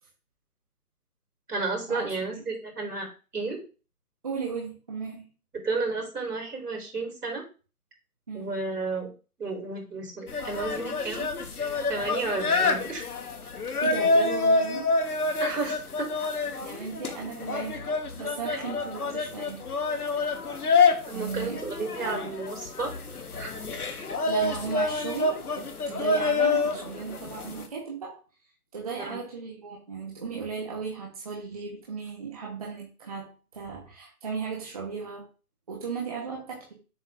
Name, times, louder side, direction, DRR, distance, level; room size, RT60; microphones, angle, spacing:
voice 1, 1.5-3.1 3.3-3.6 5.6-7.4 8.3-9.1 9.4-11.3 11.9-13.0 15.4-16.1 21.1-22.9 23.4-23.5 29.0-29.2, right 3 dB, 80° right, 1 dB, 3.5 m, -32 dB
voice 2, 4.2-5.3 8.3-8.5 13.8-14.9 16.6-19.6 21.1-21.6 22.0-22.4 23.8-28.2 28.7-35.2 35.7-36.7, right 5 dB, 25° right, -3 dB, 1.1 m, -36 dB
sound 1, 10.3-27.7, left 3 dB, 70° left, 1.3 m, -27 dB
7.4 x 5.1 x 2.5 m, 0.33 s
hypercardioid pair, 165°, 46 cm